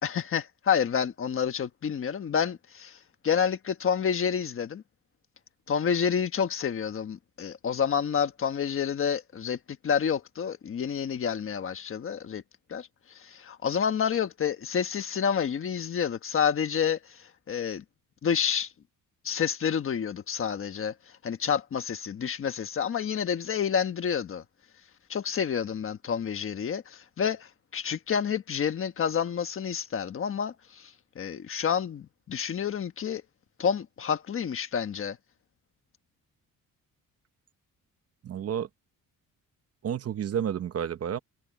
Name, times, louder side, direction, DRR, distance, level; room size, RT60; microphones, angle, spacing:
voice 1, 0.0-3.0 3.2-4.8 5.7-12.4 12.7-17.8 18.2-18.7 19.2-20.9 21.2-24.4 25.1-33.2 33.6-35.2, left 7 dB, 40° left, 1.3 m, -29 dB
voice 2, 38.2-38.7 39.8-41.2, right 9 dB, 45° right, 0.9 m, -30 dB
cardioid pair, 175°, 35 cm